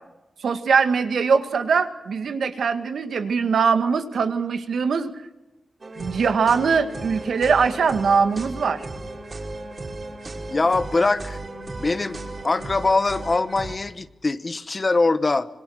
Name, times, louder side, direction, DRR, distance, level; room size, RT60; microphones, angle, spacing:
voice 1, 0.4-5.1 6.0-8.9, right 5 dB, 80° right, 9 dB, 2.1 m, -21 dB
sound 1, 5.8-13.8, right 2 dB, 35° right, 4.7 m, -35 dB
voice 2, 10.5-11.4 11.8-12.2 12.4-15.5, left 3 dB, 30° left, 14 dB, 1.0 m, -22 dB
26.5 x 24.0 x 6.6 m, 0.95 s
wide cardioid pair, 155°, 0 cm